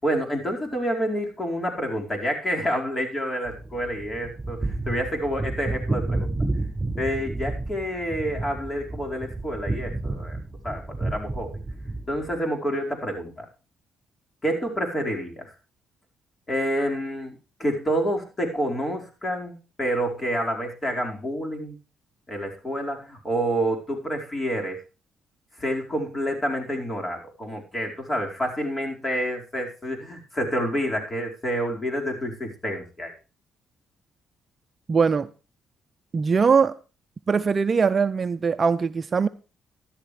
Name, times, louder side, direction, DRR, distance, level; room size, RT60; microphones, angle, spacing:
voice 1, 0.0-6.3 7.0-10.4 10.6-11.6 12.1-13.4 14.4-15.4 16.5-21.7 22.3-24.8 25.6-33.1, equal, 25° left, 4.9 m, -28 dB
sound 1, 3.5-12.4, right 2 dB, 20° right, 5.6 m, -31 dB
voice 2, 34.9-35.3 36.1-36.8 37.3-39.3, right 5 dB, 40° right, 0.7 m, -21 dB
14.0 x 12.0 x 3.3 m
cardioid pair, 90°, 0 cm